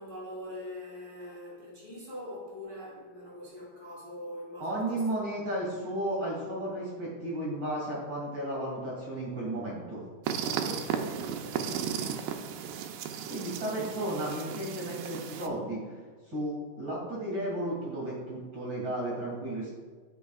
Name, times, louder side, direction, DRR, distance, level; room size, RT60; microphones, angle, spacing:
voice 1, 0.0-5.0 10.6-12.1, left 1 dB, 20° left, -7 dB, 1.8 m, -43 dB
voice 2, 4.6-10.0 13.3-16.0 16.3-19.7, right 1 dB, 35° right, -4 dB, 2.6 m, -33 dB
sound 1, 10.2-15.5, right 8 dB, 85° right, 2.3 m, -35 dB
13.5 x 6.2 x 2.4 m, 1.5 s
omnidirectional pair, 4.0 m